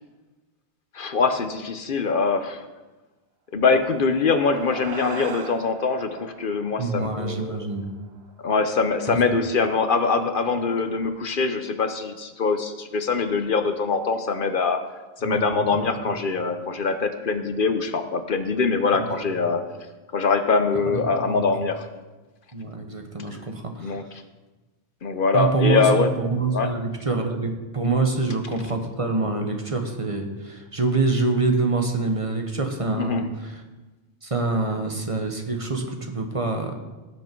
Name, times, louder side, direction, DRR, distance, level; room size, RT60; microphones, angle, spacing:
voice 1, 0.9-2.6 3.5-7.6 8.4-14.8 15.2-19.6 20.1-21.8 23.8-24.0 25.0-26.1 26.5-26.7 33.0-33.2, left 4 dB, 60° left, 8 dB, 0.9 m, -23 dB
sound 1, 3.8-8.5, right 5 dB, 80° right, 1.1 m, -40 dB
voice 2, 6.8-7.9 9.1-9.2 15.2-16.2 18.9-19.5 20.9-21.5 22.5-24.1 25.3-33.6 34.2-36.7, right 3 dB, 35° right, 4 dB, 1.1 m, -26 dB
17.5 x 6.2 x 4.5 m, 1.2 s
omnidirectional pair, 1.0 m